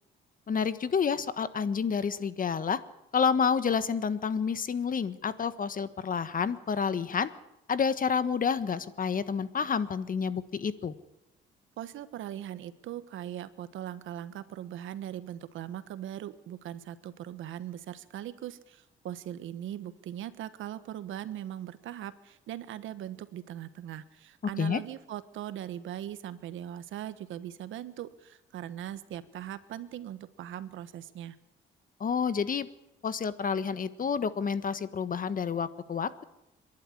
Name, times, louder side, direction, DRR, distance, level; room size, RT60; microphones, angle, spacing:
voice 1, 0.5-2.8 3.1-7.3 7.7-10.9 24.6-24.8 32.0-32.7 33.0-36.2, left 6 dB, 45° left, 13 dB, 1.4 m, -29 dB
voice 2, 11.8-31.4, right 11 dB, 80° right, 13 dB, 1.4 m, -40 dB
27.0 x 11.5 x 9.9 m, 0.88 s
cardioid pair, 90°, 20 cm